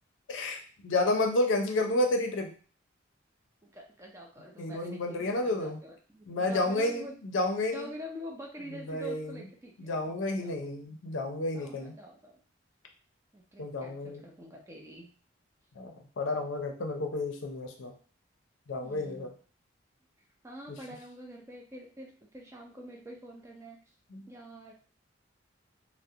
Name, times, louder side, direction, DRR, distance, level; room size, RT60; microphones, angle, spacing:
voice 1, 0.3-2.5 4.6-5.8 6.3-7.9 8.9-9.3 9.8-11.9 13.6-14.2 15.8-17.9 18.7-19.3 24.1-24.3, left 2 dB, 80° left, 4 dB, 0.5 m, -31 dB
voice 2, 3.6-7.1 7.7-10.5 11.5-12.4 13.3-15.1 18.8-19.4 20.4-23.8 24.3-24.7, equal, 15° right, 0 dB, 0.4 m, -46 dB
2.4 x 2.0 x 2.7 m, 0.40 s
head